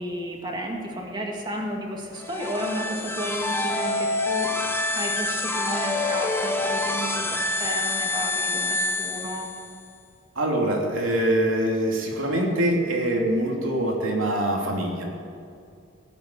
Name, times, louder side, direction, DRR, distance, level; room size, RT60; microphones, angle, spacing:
voice 1, 0.0-4.5 4.9-9.5, equal, 20° right, 0 dB, 2.2 m, -32 dB
sound 1, 2.2-9.8, left 2 dB, 10° left, 0.8 m, -27 dB
voice 2, 10.3-15.0, right 1 dB, 90° right, 0 dB, 2.9 m, -24 dB
17.5 x 7.9 x 9.3 m, 2.4 s
head